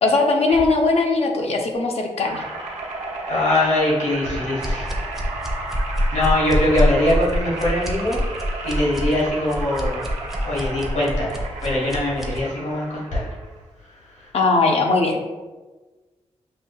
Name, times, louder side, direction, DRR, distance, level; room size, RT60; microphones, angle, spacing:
voice 1, 0.0-2.4 14.3-15.2, left 3 dB, 60° left, 2 dB, 0.6 m, -19 dB
sound 1, 2.2-13.6, right 2 dB, 80° right, 0.8 m, -33 dB
voice 2, 3.3-5.0 6.1-8.2 8.6-10.0 10.4-13.3 14.1-14.3, left 1 dB, 75° left, -6 dB, 1.3 m, -22 dB
sound 2, 4.6-12.4, equal, ahead, 0.6 m, -25 dB
5.9 x 2.7 x 2.3 m, 1.3 s
wide cardioid pair, 120°, 12 cm